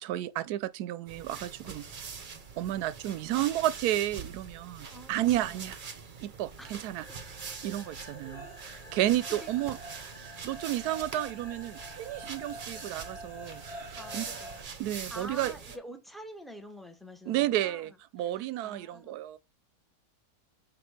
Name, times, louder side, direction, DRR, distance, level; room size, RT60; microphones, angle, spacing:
voice 1, 0.0-1.8 2.6-5.8 6.2-7.1 7.6-9.8 10.1-14.2 14.8-15.5 17.3-19.4, right 14 dB, 90° right, 1.1 m, -32 dB
sound 1, 1.1-15.8, right 5 dB, 40° right, 0.8 m, -44 dB
voice 2, 4.9-5.6 6.6-7.2 9.4-9.5 14.0-14.6 14.9-19.1, equal, ahead, 0.6 m, -47 dB
sound 2, 7.0-14.6, right 1 dB, 25° left, 1.3 m, -47 dB
6.2 x 3.8 x 4.7 m
omnidirectional pair, 1.6 m